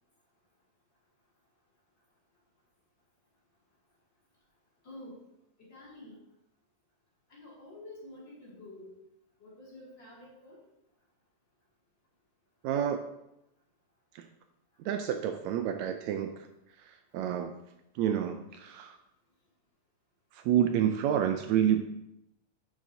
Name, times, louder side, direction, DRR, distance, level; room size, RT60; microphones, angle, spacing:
voice 1, 4.8-5.2 5.7-6.2 7.3-8.9 9.4-10.6, left 1 dB, 40° left, -6 dB, 2.8 m, -48 dB
voice 2, 12.6-13.0 14.2-14.3 14.8-16.5 17.1-17.6 18.0-19.0 20.3-21.8, right 9 dB, 80° right, 7 dB, 1.7 m, -28 dB
10.5 x 6.5 x 2.7 m, 0.84 s
omnidirectional pair, 3.4 m